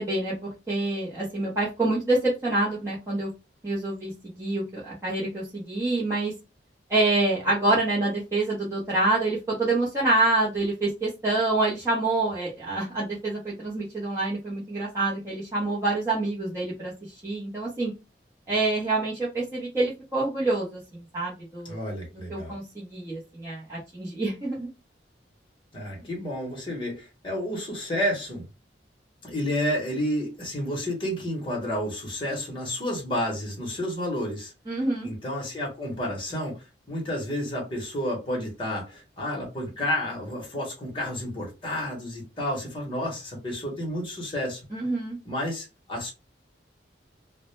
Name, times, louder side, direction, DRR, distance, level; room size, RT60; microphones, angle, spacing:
voice 1, 0.0-3.3 3.6-6.3 6.9-17.9 18.5-21.8 22.3-24.7 34.7-35.1 44.7-45.2, right 2 dB, 15° right, 0.6 m, -27 dB
voice 2, 21.6-22.5 25.7-28.4 29.2-34.5 35.0-36.6 36.9-44.6 45.3-46.1, left 1 dB, 30° left, 0.8 m, -30 dB
2.0 x 2.0 x 3.0 m
head